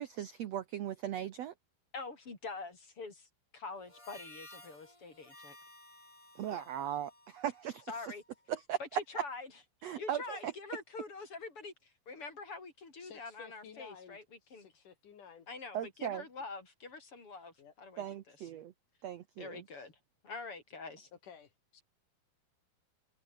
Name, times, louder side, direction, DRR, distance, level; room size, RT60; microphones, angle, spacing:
voice 1, 0.0-1.5 6.3-7.8 8.5-9.0 9.8-10.5 15.7-16.2 18.0-18.7 19.0-19.6, right 10 dB, 75° right, 1.5 m, -38 dB
voice 2, 1.9-3.3 3.5-5.6 6.5-6.7 7.9-8.2 8.8-9.5 10.0-14.2 14.5-14.7 15.5-18.5 19.4-19.9 20.2-21.1, left 4 dB, 35° left, 5.4 m, -45 dB
Harmonica, 3.8-8.4, left 1 dB, 10° left, 3.7 m, -56 dB
voice 3, 13.0-14.2 14.5-15.5 17.6-17.7 21.2-21.8, left 7 dB, 60° left, 3.6 m, -54 dB
omnidirectional pair, 4.3 m